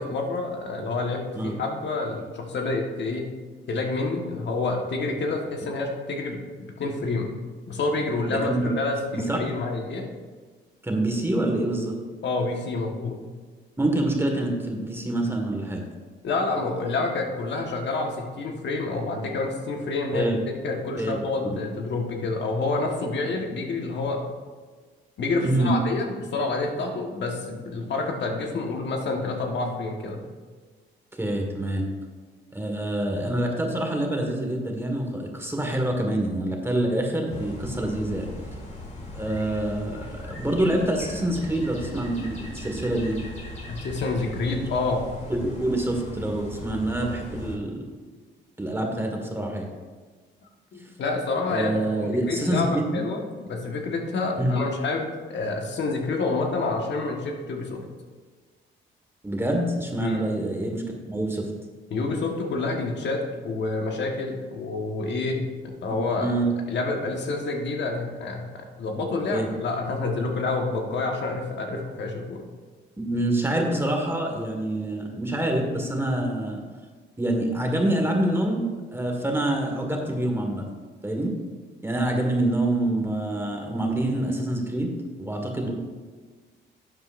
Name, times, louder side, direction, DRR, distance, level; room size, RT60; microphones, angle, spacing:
voice 1, 0.0-3.3 3.7-6.4 6.8-7.3 7.7-10.0 12.2-13.2 16.2-24.2 25.2-30.2 43.7-45.1 50.7-51.7 52.0-57.8 60.0-60.2 61.9-66.3 66.7-72.4, left 3 dB, 65° left, 2 dB, 1.4 m, -28 dB
voice 2, 8.3-8.7 9.1-9.4 10.8-12.0 13.8-15.8 20.1-20.4 21.0-21.6 25.4-25.8 31.2-31.8 32.5-38.3 39.1-43.3 45.3-47.8 48.6-49.7 51.5-53.0 54.4-54.6 59.2-61.5 66.2-66.5 69.3-69.5 73.0-76.6 77.2-78.6 78.9-80.6 81.0-81.3 81.8-84.9 85.2-85.7, right 1 dB, 10° right, 2 dB, 1.6 m, -26 dB
sound 1, 37.3-47.6, left 1 dB, 35° left, 2.4 m, -38 dB
11.5 x 7.8 x 2.6 m, 1.4 s
cardioid pair, 90°, 20 cm